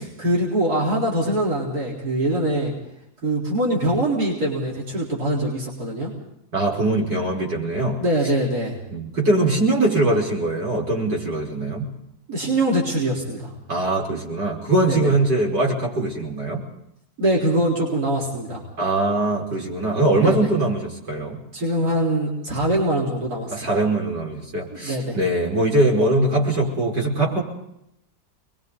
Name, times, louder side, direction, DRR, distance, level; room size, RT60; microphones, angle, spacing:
voice 1, 0.2-2.7 3.2-6.1 8.0-8.8 12.3-13.5 14.9-15.0 17.2-18.6 20.2-20.4 21.5-23.6 24.7-25.2, right 1 dB, 60° right, -4 dB, 4.6 m, -23 dB
voice 2, 6.5-8.0 8.2-8.3 8.9-11.9 13.7-16.6 18.8-21.4 23.5-27.4, right 2 dB, 80° right, -1 dB, 5.7 m, -22 dB
30.0 x 21.5 x 4.0 m, 0.79 s
omnidirectional pair, 1.8 m